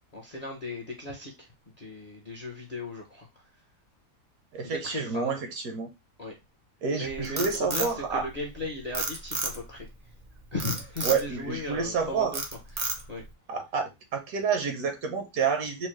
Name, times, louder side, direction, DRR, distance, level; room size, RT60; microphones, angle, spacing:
voice 1, 0.1-1.5 1.8-3.5 4.6-5.4 6.2-6.4 6.9-9.9 10.5-12.4 12.7-13.2, left 2 dB, 40° left, 0.6 m, -37 dB
voice 2, 4.5-5.9 6.8-8.3 11.0-12.4 13.5-15.9, right 5 dB, 75° right, 1.2 m, -29 dB
Frog, 7.0-8.6 8.9-9.8 10.6-11.2 11.7-12.0 12.3-13.3, right 3 dB, 45° right, 0.6 m, -31 dB
4.4 x 2.0 x 3.1 m
omnidirectional pair, 1.5 m